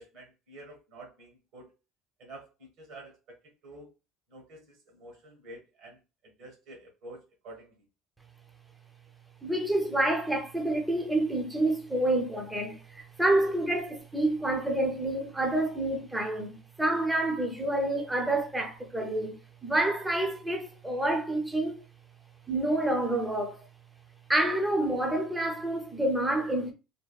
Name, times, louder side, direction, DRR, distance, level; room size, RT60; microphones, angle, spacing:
voice 1, 0.0-1.7 2.2-3.4 3.6-3.9 4.3-7.8, right 2 dB, 55° right, 1.0 m, -49 dB
voice 2, 9.4-21.8 22.5-23.7 24.3-26.7, right 1 dB, 5° right, 0.5 m, -28 dB
3.4 x 2.2 x 2.3 m
cardioid pair, 155°, 0 cm